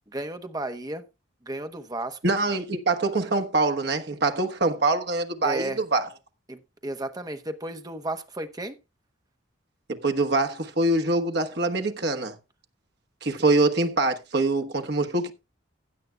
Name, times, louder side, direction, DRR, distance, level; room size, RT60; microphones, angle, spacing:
voice 1, 0.1-1.1 1.4-2.2 5.4-5.8 6.5-8.7, right 1 dB, 20° right, 1.0 m, -33 dB
voice 2, 2.2-6.1 9.9-12.4 13.2-15.3, right 2 dB, 55° right, 1.3 m, -24 dB
16.0 x 9.4 x 2.3 m
head